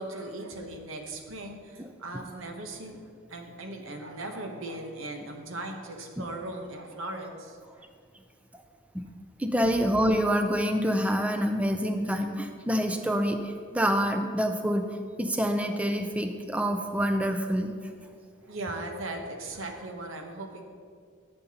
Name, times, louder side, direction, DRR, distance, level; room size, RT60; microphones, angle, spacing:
voice 1, 0.0-3.0 3.3-7.9 11.7-11.8 18.4-20.6, right 2 dB, 80° right, 4 dB, 0.9 m, -38 dB
voice 2, 9.4-17.7, equal, 5° right, 6 dB, 0.4 m, -27 dB
12.5 x 6.7 x 2.9 m, 2.1 s
head